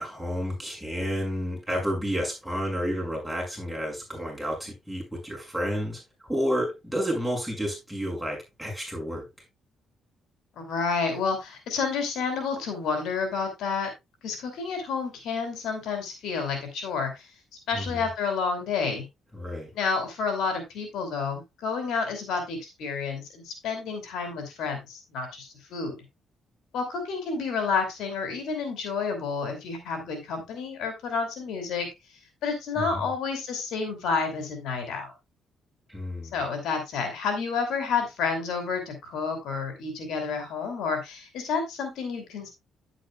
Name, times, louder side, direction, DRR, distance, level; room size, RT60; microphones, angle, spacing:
voice 1, 0.0-9.3 17.7-18.1 19.3-19.7 32.7-33.1 35.9-36.4, equal, ahead, 6.2 m, -31 dB
voice 2, 10.6-13.9 14.2-17.3 17.7-19.1 19.7-26.0 26.7-31.9 32.4-35.1 36.3-42.5, left 5 dB, 80° left, 2.7 m, -30 dB
10.0 x 8.9 x 2.3 m
cardioid pair, 90°, 0 cm